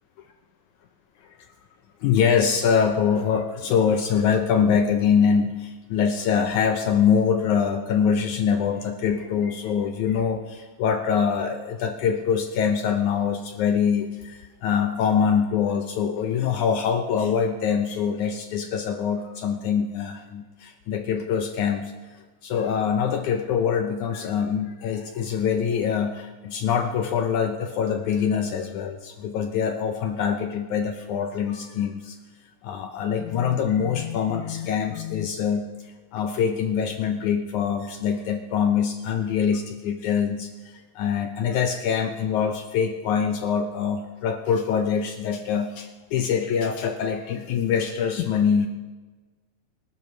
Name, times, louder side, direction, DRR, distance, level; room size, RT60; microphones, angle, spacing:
voice 1, 2.0-21.9 22.4-32.2 32.6-35.6 36.1-40.5 41.0-48.7, left 7 dB, 75° left, 5 dB, 1.9 m, -24 dB
25.5 x 12.0 x 3.2 m, 1.3 s
omnidirectional pair, 3.9 m